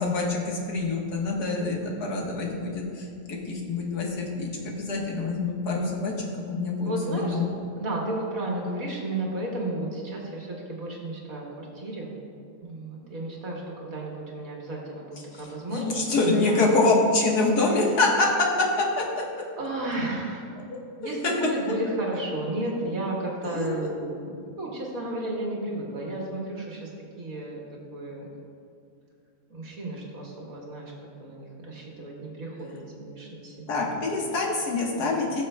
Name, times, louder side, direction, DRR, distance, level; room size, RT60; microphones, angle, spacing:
voice 1, 0.0-6.1 6.5-7.5 15.7-18.3 20.7-20.8 21.2-21.3 23.4-23.7 33.7-35.5, left 3 dB, 75° left, -2 dB, 1.8 m, -25 dB
voice 2, 1.8-2.6 5.8-5.9 6.8-7.4 7.8-12.1 12.6-16.6 19.6-20.4 21.0-26.9 27.2-28.3 29.5-30.9 31.2-33.8 35.0-35.3, right 2 dB, 60° right, -3 dB, 2.0 m, -33 dB
17.5 x 6.9 x 2.2 m, 2.4 s
omnidirectional pair, 1.7 m